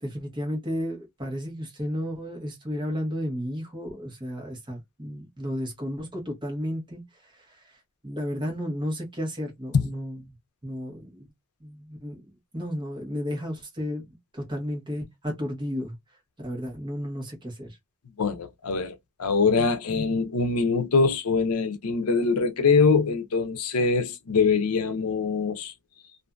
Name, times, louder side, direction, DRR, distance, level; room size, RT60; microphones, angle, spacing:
voice 1, 0.0-10.3 10.6-11.3 11.6-14.1 14.3-16.0 16.4-17.8, equal, 20° right, 1.0 m, -33 dB
voice 2, 18.2-25.7, left 4 dB, 90° left, 0.6 m, -23 dB
2.5 x 2.5 x 2.2 m
head